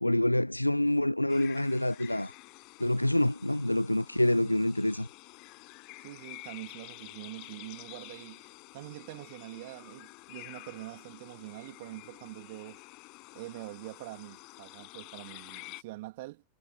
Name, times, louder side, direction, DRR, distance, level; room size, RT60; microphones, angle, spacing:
voice 1, 0.0-2.3 2.8-5.1, left 1 dB, 85° left, 0.4 m, -27 dB
sound 1, 1.3-15.8, left 27 dB, 40° left, 5.6 m, -50 dB
voice 2, 6.0-12.8 13.3-16.4, right 20 dB, 50° right, 2.5 m, -45 dB
figure-of-eight pair, 90°, 0 cm